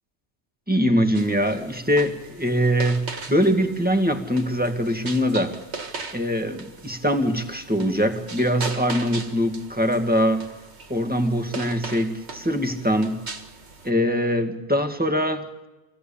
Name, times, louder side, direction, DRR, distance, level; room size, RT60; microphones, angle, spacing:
voice 1, 0.7-5.6 6.1-10.5 10.9-13.2 13.8-15.5, equal, 10° right, 3 dB, 1.9 m, -23 dB
sound 1, 1.1-13.9, right 4 dB, 75° right, 1.9 m, -39 dB
26.0 x 16.5 x 8.5 m, 1.1 s
omnidirectional pair, 1.1 m